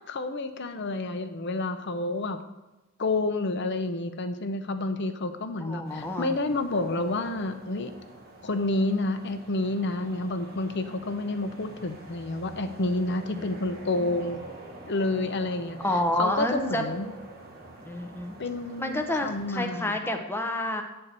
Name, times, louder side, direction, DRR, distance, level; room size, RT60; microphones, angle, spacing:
voice 1, 0.1-2.4 3.0-7.9 8.4-14.4 14.9-15.8 16.2-17.1 18.4-20.0, left 2 dB, 55° left, 9 dB, 0.7 m, -29 dB
voice 2, 5.6-6.3 13.3-13.5 14.0-14.1 15.8-16.8 17.8-18.4 18.8-20.8, left 1 dB, 10° left, 5 dB, 0.8 m, -29 dB
sound 1, 5.8-19.7, right 3 dB, 45° right, 1.4 m, -44 dB
9.6 x 4.4 x 6.7 m, 1.0 s
head